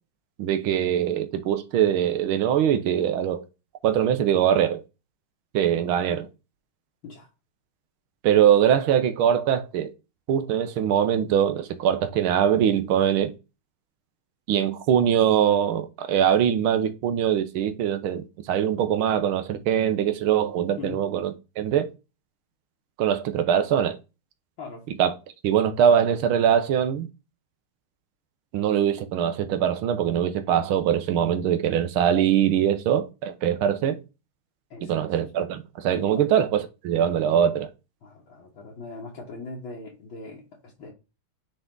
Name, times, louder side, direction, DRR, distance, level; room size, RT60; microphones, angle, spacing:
voice 1, 0.4-3.4 3.8-4.8 5.5-6.3 8.2-9.9 10.3-13.3 14.5-21.9 23.0-24.0 25.0-25.1 25.4-27.1 28.5-34.0 34.9-37.7, right 9 dB, 90° right, 1.7 m, -22 dB
voice 2, 34.7-35.2 36.1-36.2 38.0-40.9, left 3 dB, 75° left, 2.3 m, -40 dB
9.4 x 3.8 x 3.8 m
omnidirectional pair, 2.2 m